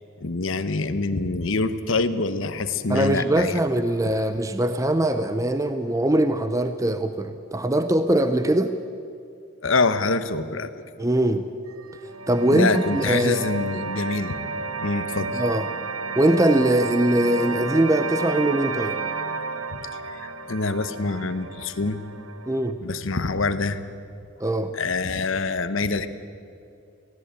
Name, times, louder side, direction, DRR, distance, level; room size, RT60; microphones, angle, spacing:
voice 1, 0.2-3.6 9.6-10.7 12.5-14.4 14.8-15.4 19.7-22.0 22.8-23.8 24.7-26.1, left 3 dB, 65° left, 11 dB, 1.0 m, -25 dB
voice 2, 2.9-8.7 11.0-11.5 12.3-13.5 15.4-15.7 16.2-19.0 22.5-22.8 24.4-24.7, right 1 dB, 15° right, 9 dB, 0.6 m, -22 dB
sound 1, 11.7-22.7, right 4 dB, 85° right, 1.0 m, -32 dB
18.5 x 16.5 x 8.9 m, 2.5 s
head